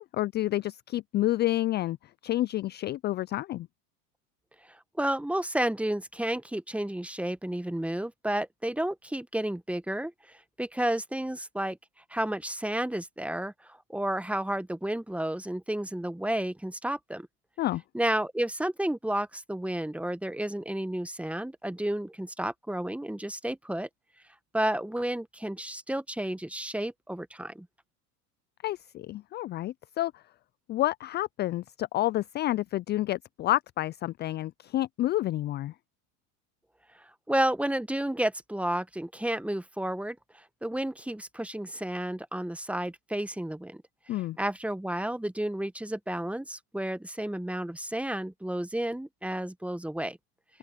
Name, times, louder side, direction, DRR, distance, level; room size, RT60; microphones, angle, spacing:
voice 1, 0.0-2.0 2.2-3.7 17.6-17.8 28.6-30.2 30.7-35.7 44.1-44.4, left 15 dB, 25° left, 0.4 m, -29 dB
voice 2, 4.6-11.8 12.1-17.3 17.9-23.9 24.5-27.7 36.9-43.8 44.4-50.2, right 1 dB, 5° right, 1.4 m, -31 dB
open air
hypercardioid pair, 90°, 46 cm